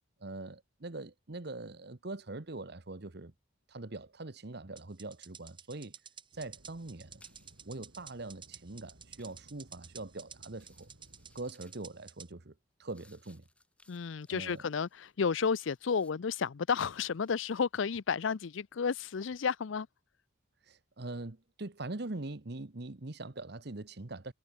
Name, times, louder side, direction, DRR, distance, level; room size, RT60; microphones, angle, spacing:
voice 1, 0.2-3.3 3.7-5.9 6.4-7.2 7.6-10.9 11.3-12.5 12.8-13.4 14.3-14.6 20.7-24.3, right 2 dB, 55° right, 1.2 m, -42 dB
sound 1, 4.8-12.3, right 7 dB, 25° right, 6.6 m, -51 dB
sound 2, 5.7-5.8 6.0-7.8 8.3-8.6 9.2-9.5 10.1-10.2 10.5-12.1 12.5-16.4 16.8-17.4, left 2 dB, 5° left, 7.9 m, -68 dB
sound 3, 6.3-11.5, right 1 dB, 75° right, 2.7 m, -61 dB
voice 2, 13.9-19.9, left 6 dB, 75° left, 0.5 m, -32 dB
head